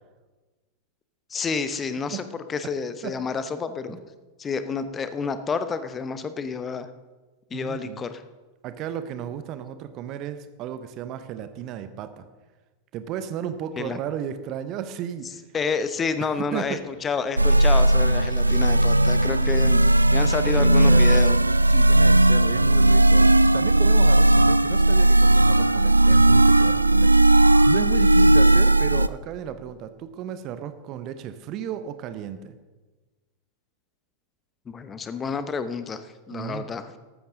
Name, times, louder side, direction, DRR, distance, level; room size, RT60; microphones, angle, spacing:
voice 1, 1.3-2.2 2.5-4.0 4.4-6.9 7.5-8.2 13.8-14.0 15.5-19.8 20.1-21.3 34.7-36.9, left 5 dB, 20° left, 11 dB, 0.9 m, -29 dB
voice 2, 7.5-8.0 8.6-12.3 12.9-15.4 16.5-16.8 18.4-18.7 19.2-19.6 20.4-21.2 21.7-32.5 36.3-36.7, right 9 dB, 40° right, 11 dB, 0.9 m, -34 dB
sound 1, 16.0-28.1, right 3 dB, 55° right, 4.1 m, -49 dB
sound 2, 17.4-29.1, right 1 dB, 85° right, 0.3 m, -17 dB
14.0 x 13.0 x 3.8 m, 1.3 s
figure-of-eight pair, 90°, 0 cm